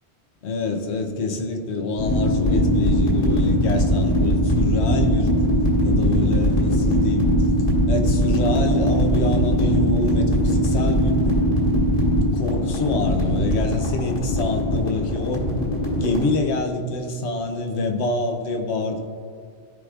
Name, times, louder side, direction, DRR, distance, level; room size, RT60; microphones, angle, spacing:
voice 1, 0.4-5.3 5.8-7.3 7.9-11.3 12.1-15.4 15.9-19.1, left 3 dB, 80° left, 4 dB, 1.1 m, -26 dB
sound 1, 2.0-16.2, equal, 60° left, 1.9 m, -20 dB
14.5 x 4.8 x 2.4 m, 2.2 s
omnidirectional pair, 1.1 m